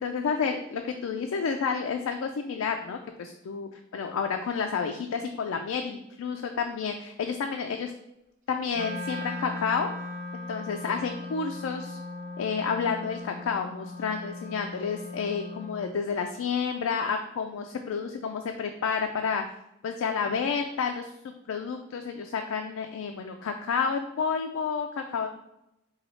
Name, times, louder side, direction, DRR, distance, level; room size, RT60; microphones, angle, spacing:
voice 1, 0.0-7.9 8.5-9.9 10.5-12.0 12.4-19.4 19.8-25.3, left 5 dB, 85° left, 4 dB, 0.3 m, -30 dB
Wind instrument woodwind instrument, 8.7-15.9, left 2 dB, 40° right, 0.8 m, -38 dB
4.1 x 2.3 x 4.3 m, 0.86 s
head